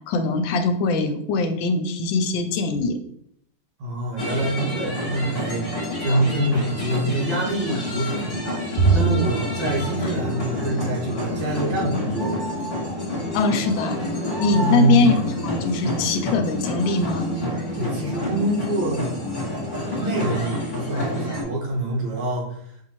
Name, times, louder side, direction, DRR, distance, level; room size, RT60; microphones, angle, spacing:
voice 1, 0.1-2.9 6.1-6.2 13.3-14.0 14.4-15.1 15.4-17.3, left 4 dB, 90° left, 7 dB, 1.4 m, -22 dB
voice 2, 3.8-5.6 6.0-8.6 8.9-12.4 14.5-15.1 17.7-19.1 20.0-22.7, right 1 dB, 85° right, -3 dB, 2.0 m, -25 dB
sound 1, 4.2-21.4, left 1 dB, 30° left, 1.4 m, -28 dB
Bowed string instrument, 8.8-11.3, right 5 dB, 65° right, 0.9 m, -25 dB
5.3 x 2.7 x 3.0 m, 0.68 s
omnidirectional pair, 2.0 m